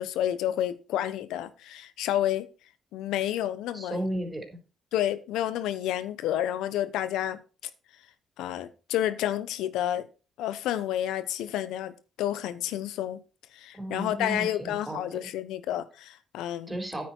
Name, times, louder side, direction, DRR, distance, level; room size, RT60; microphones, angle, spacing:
voice 1, 0.0-2.5 2.9-4.0 4.9-7.4 8.4-10.1 10.4-13.2 13.5-16.7, left 12 dB, 90° left, 0.9 m, -30 dB
voice 2, 3.7-4.6 13.7-15.2 16.7-17.1, right 1 dB, 15° right, 4.2 m, -34 dB
9.6 x 8.6 x 4.6 m
cardioid pair, 90°, 0 cm